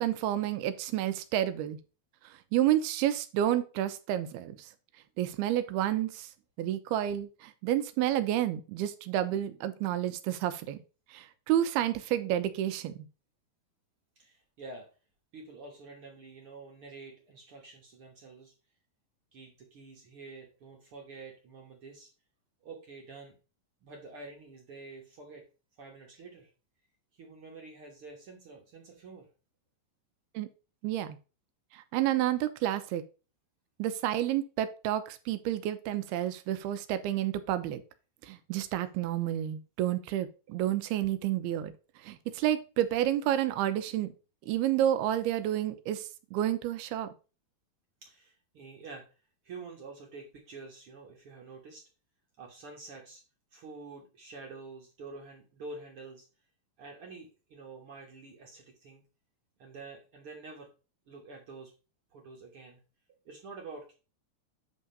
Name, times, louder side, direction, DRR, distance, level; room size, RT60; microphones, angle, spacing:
voice 1, 0.0-1.8 2.3-4.7 5.2-6.3 6.6-10.8 11.1-12.9 30.4-30.5 30.8-31.2 31.7-33.0 33.8-37.8 38.3-41.7 42.0-44.1 44.5-47.1, right 12 dB, 85° right, 11 dB, 2.7 m, -30 dB
voice 2, 14.2-14.9 15.3-18.5 19.3-22.1 22.6-23.3 23.8-25.4 25.8-26.5 27.1-29.3 48.0-49.1 49.4-51.8 52.4-53.2 53.5-56.3 56.8-59.0 59.6-60.7 61.1-61.7 62.1-62.8 63.2-63.9, right 3 dB, 60° right, 1 dB, 1.5 m, -48 dB
9.0 x 3.7 x 5.5 m, 0.33 s
omnidirectional pair, 4.5 m